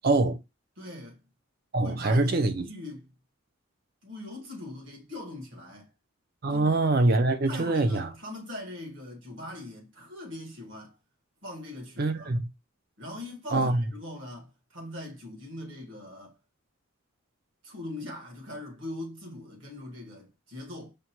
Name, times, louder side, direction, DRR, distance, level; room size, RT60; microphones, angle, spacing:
voice 1, 0.0-0.4 1.7-2.7 6.4-8.1 12.0-12.5 13.5-13.8, right 2 dB, 45° right, 0.5 m, -24 dB
voice 2, 0.8-1.2 1.8-3.1 4.0-5.9 6.5-6.7 7.4-11.0 11.4-12.3 13.0-16.4 17.6-20.9, left 1 dB, 60° right, 1.5 m, -41 dB
5.2 x 2.2 x 2.9 m
head